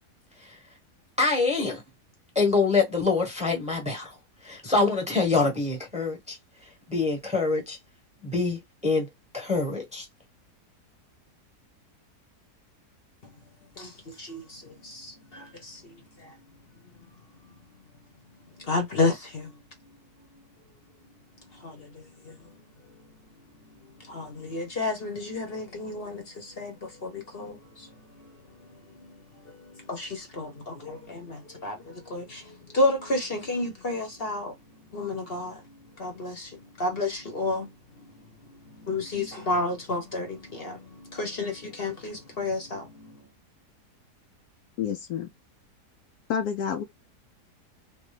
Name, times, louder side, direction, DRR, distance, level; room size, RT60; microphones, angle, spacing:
voice 1, 1.2-1.8 2.3-4.1 4.4-6.4 6.9-7.8 8.2-9.1 9.3-10.0, left 3 dB, 5° right, 1.1 m, -25 dB
voice 2, 13.8-16.5 18.6-20.4 21.5-22.4 22.9-23.1 23.7-34.6 34.9-43.3, left 2 dB, 40° left, 1.0 m, -32 dB
voice 3, 44.8-45.3 46.3-46.8, left 8 dB, 75° left, 1.0 m, -29 dB
3.2 x 2.5 x 3.2 m
omnidirectional pair, 1.8 m